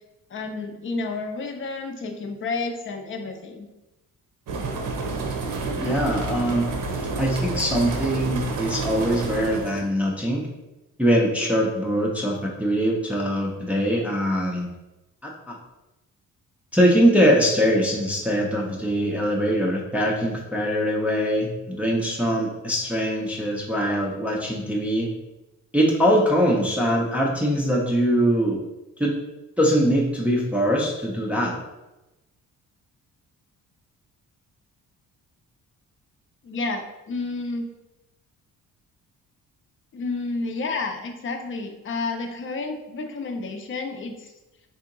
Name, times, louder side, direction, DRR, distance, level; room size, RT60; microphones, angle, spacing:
voice 1, 0.3-3.7 36.4-37.7 39.9-44.3, left 3 dB, 40° left, 5 dB, 0.6 m, -30 dB
sound 1, 4.5-9.9, right 3 dB, 75° right, 0.7 m, -29 dB
voice 2, 5.8-6.7 7.2-10.4 11.0-14.7 15.2-15.6 16.7-25.1 25.7-28.6 29.0-29.2 29.6-31.5, equal, 5° right, -2 dB, 0.5 m, -22 dB
3.7 x 2.8 x 3.7 m, 0.99 s
cardioid pair, 135°, 32 cm